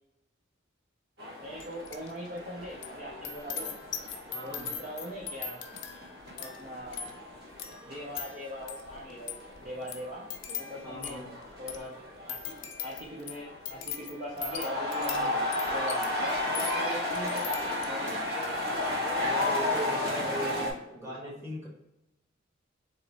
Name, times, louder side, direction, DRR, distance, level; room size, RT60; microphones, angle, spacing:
sound 1, 1.2-20.7, left 2 dB, 55° right, 1.5 m, -34 dB
voice 1, 1.4-3.7 4.4-5.6 6.4-7.1 7.9-10.2 10.6-11.3 11.6-12.0 12.3-18.3 20.2-21.3, equal, 40° right, -2 dB, 0.6 m, -41 dB
sound 2, 1.6-2.1 2.4-18.1 18.6-18.9, left 7 dB, 65° left, 0.6 m, -41 dB
voice 2, 4.3-4.7 10.8-11.3 19.2-20.7 21.0-21.7, equal, 15° right, -5 dB, 1.4 m, -38 dB
3.8 x 3.0 x 4.0 m, 0.90 s
head